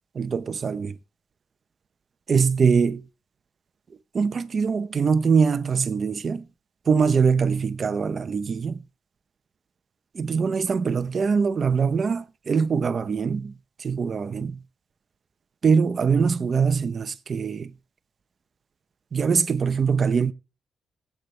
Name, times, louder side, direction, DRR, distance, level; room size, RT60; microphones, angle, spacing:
voice 1, 0.1-1.0 2.3-3.0 4.1-6.4 6.9-8.8 10.1-13.5 13.8-14.6 15.6-17.7 19.1-20.3, right 5 dB, 40° right, 0.8 m, -23 dB
19.5 x 8.5 x 3.3 m
cardioid pair, 130°, 0 cm